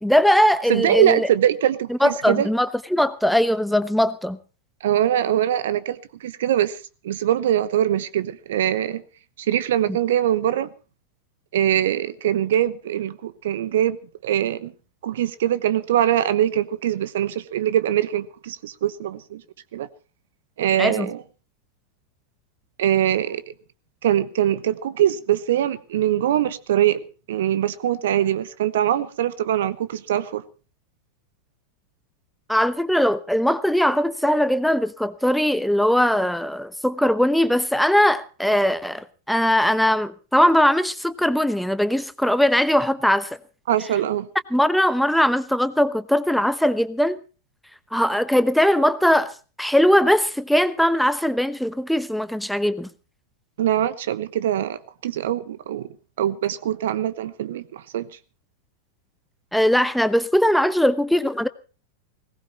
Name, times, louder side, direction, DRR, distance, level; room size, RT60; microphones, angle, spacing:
voice 1, 0.0-1.3 1.9-4.4 20.8-21.1 32.5-43.4 44.5-47.2 47.9-52.9 59.5-61.5, equal, ahead, 0.9 m, -20 dB
voice 2, 0.7-2.5 4.8-6.8 7.0-9.0 9.5-10.7 11.5-14.0 14.2-14.7 15.0-19.4 19.7-19.9 20.6-21.2 22.8-23.4 24.0-30.4 43.7-44.3 53.6-55.9 56.2-58.1, right 11 dB, 60° right, 1.0 m, -22 dB
20.5 x 18.5 x 3.1 m
figure-of-eight pair, 90°, 0 cm